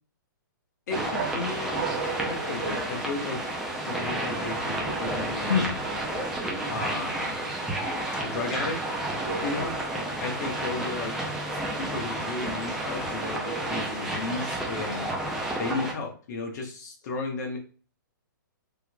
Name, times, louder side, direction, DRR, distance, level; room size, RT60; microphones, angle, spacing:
voice 1, 0.9-2.0 2.2-3.4 3.8-5.8 6.7-7.4 8.2-8.8 9.4-9.7 10.2-11.1 11.5-15.1 15.6-17.6, left 3 dB, 55° left, 2 dB, 1.1 m, -34 dB
sound 1, 0.9-15.9, right 1 dB, 5° right, 0.5 m, -31 dB
sound 2, 1.1-3.6 4.8-5.4 5.8-6.3 9.2-9.9 13.4-14.2, right 5 dB, 60° right, 0.8 m, -37 dB
sound 3, 4.9-6.5, left 6 dB, 85° left, 0.6 m, -32 dB
3.5 x 2.9 x 2.3 m, 0.39 s
hypercardioid pair, 150°, 11 cm